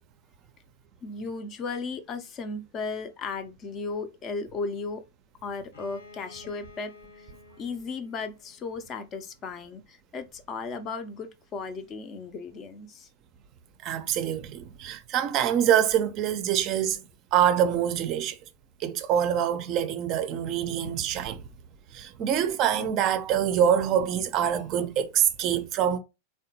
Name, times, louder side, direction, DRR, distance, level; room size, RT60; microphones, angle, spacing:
voice 1, 1.0-5.0 5.4-7.3 7.6-13.1, left 4 dB, 30° left, 0.4 m, -35 dB
Bowed string instrument, 5.7-9.4, left 3 dB, 75° left, 1.1 m, -52 dB
voice 2, 13.8-17.1 17.3-18.4 18.8-21.5 21.9-26.0, right 9 dB, 40° right, 0.4 m, -25 dB
3.4 x 2.2 x 2.7 m
figure-of-eight pair, 95°, 0 cm